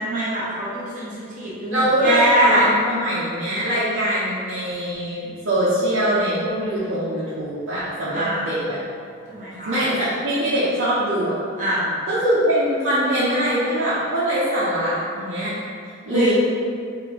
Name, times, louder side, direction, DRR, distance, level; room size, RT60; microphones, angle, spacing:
voice 1, 0.0-2.6 8.1-8.5 9.3-9.8 11.6-11.9 16.1-16.3, right 1 dB, 40° right, -9 dB, 1.0 m, -23 dB
voice 2, 1.7-8.8 9.7-11.3 12.1-15.5 16.1-16.3, equal, 75° right, -11 dB, 0.7 m, -22 dB
5.1 x 2.6 x 2.9 m, 2.3 s
head